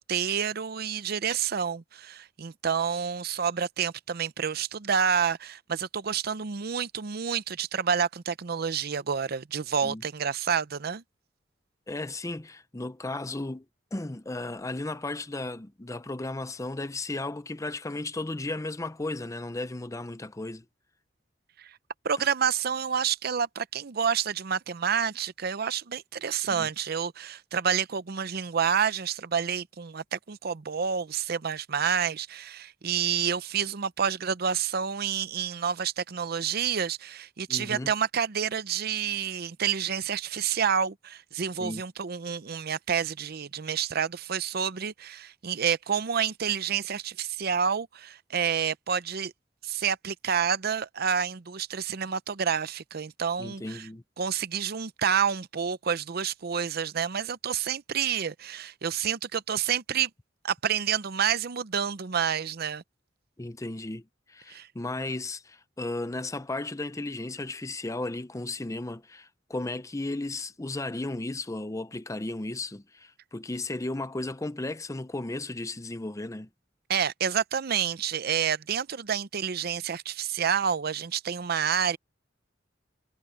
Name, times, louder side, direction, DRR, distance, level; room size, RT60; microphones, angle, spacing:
voice 1, 0.0-11.0 21.6-21.7 22.0-49.3 49.6-53.9 54.2-60.1 60.4-62.8 64.5-64.7 76.9-82.0, right 7 dB, 55° right, 0.6 m, -29 dB
voice 2, 11.9-13.6 13.9-20.6 26.5-26.7 37.5-37.9 41.6-41.8 53.4-54.0 63.4-76.5, left 2 dB, 15° left, 0.6 m, -35 dB
head